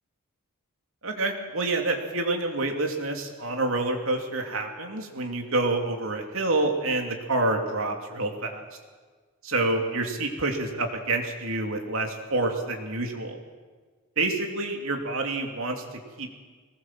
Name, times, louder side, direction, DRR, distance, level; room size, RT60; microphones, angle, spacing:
voice 1, 1.0-8.6 9.4-13.4 14.2-16.3, right 2 dB, 60° right, 3 dB, 3.0 m, -28 dB
21.5 x 19.5 x 7.7 m, 1.5 s
head